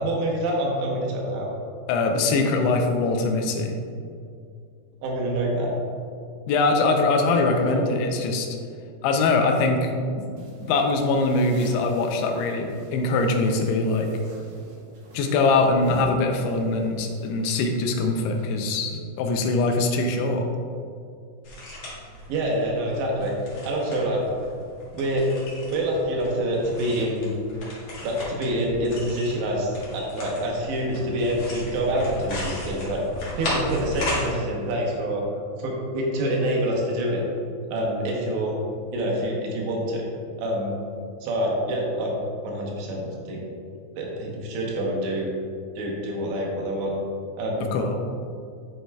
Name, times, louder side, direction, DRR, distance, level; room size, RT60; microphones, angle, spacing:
voice 1, 0.0-1.5 5.0-5.7 7.5-7.9 22.3-23.3 23.6-24.2 24.9-25.3 25.7-27.3 28.0-33.0 33.4-35.2 35.6-37.2 37.7-38.5 38.9-40.1 40.4-40.8 41.2-42.2 42.4-43.4 43.9-45.3 45.8-46.9 47.4-47.7, right 1 dB, 80° right, -2 dB, 3.3 m, -26 dB
voice 2, 1.9-3.7 6.5-8.5 9.0-9.9 10.2-14.1 15.1-20.5 47.7-48.0, left 3 dB, 80° left, 3 dB, 2.5 m, -22 dB
sound 1, 10.4-18.4, left 1 dB, 60° right, 2.1 m, -44 dB
sound 2, 21.4-34.3, left 1 dB, 60° left, 1.3 m, -36 dB
9.3 x 6.4 x 2.3 m, 2.4 s
omnidirectional pair, 5.1 m